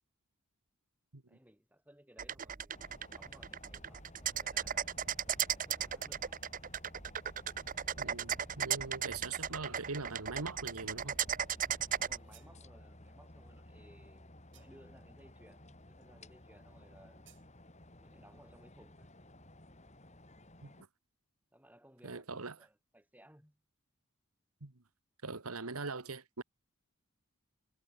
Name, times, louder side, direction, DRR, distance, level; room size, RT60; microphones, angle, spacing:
voice 1, 1.3-5.0 5.5-6.4 12.0-17.3 18.0-19.1 21.5-23.6, right 1 dB, 5° right, 4.7 m, -62 dB
sound 1, 2.2-12.2, right 9 dB, 40° right, 0.8 m, -36 dB
sound 2, 2.7-20.8, left 1 dB, 30° left, 4.8 m, -56 dB
voice 2, 8.0-11.2 20.6-20.9 22.0-22.6 24.6-24.7 25.2-26.4, right 3 dB, 85° right, 1.7 m, -42 dB
sound 3, 12.0-12.6 14.5-15.0 17.2-17.5, right 14 dB, 55° right, 4.4 m, -64 dB
head